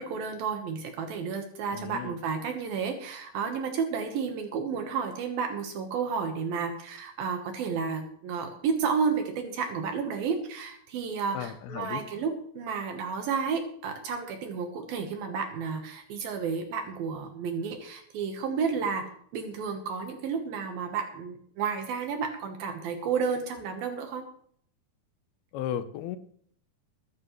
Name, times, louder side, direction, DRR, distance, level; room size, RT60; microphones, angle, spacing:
voice 1, 0.0-24.2, right 6 dB, 75° right, 4 dB, 3.0 m, -31 dB
voice 2, 1.7-2.1 11.3-12.0 25.5-26.2, left 10 dB, 85° left, 11 dB, 2.8 m, -34 dB
22.5 x 10.0 x 3.2 m, 0.62 s
omnidirectional pair, 4.4 m